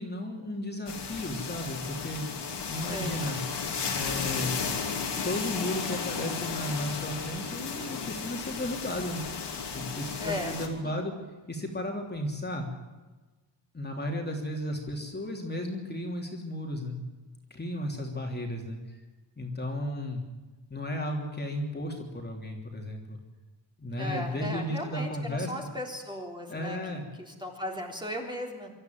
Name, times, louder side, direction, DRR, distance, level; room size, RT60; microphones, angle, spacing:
voice 1, 0.0-2.2 2.7-3.4 3.9-4.6 5.2-9.2 9.7-11.1 11.5-12.7 13.7-17.0 17.5-19.0 19.4-20.2 20.7-23.2 23.8-25.5 26.5-27.0, left 1 dB, 25° left, 1 dB, 3.2 m, -34 dB
sound 1, 0.9-10.7, left 5 dB, 65° left, 3.1 m, -34 dB
voice 2, 2.7-3.2 10.2-10.5 10.8-10.9 23.9-28.7, left 1 dB, 10° right, 0 dB, 3.5 m, -37 dB
25.0 x 13.5 x 9.4 m, 1.2 s
wide cardioid pair, 150°, 44 cm